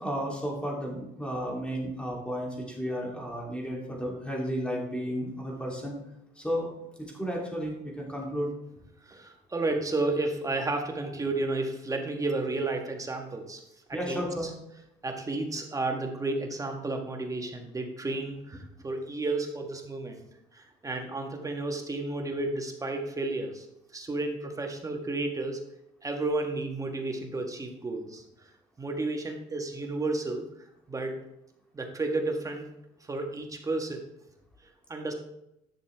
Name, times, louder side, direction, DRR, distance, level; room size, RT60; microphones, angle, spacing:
voice 1, 0.0-5.9 6.4-6.7 7.1-8.5 13.9-14.5, equal, 5° left, -2 dB, 3.0 m, -33 dB
voice 2, 9.1-13.6 14.1-14.2 15.0-20.2 20.5-23.6 23.9-25.6 26.0-28.2 28.8-30.5 30.9-31.2 31.7-32.7 33.1-34.0 34.9-35.1, right 2 dB, 20° right, 3 dB, 1.4 m, -32 dB
10.5 x 6.6 x 3.5 m, 0.82 s
cardioid pair, 110°, 17 cm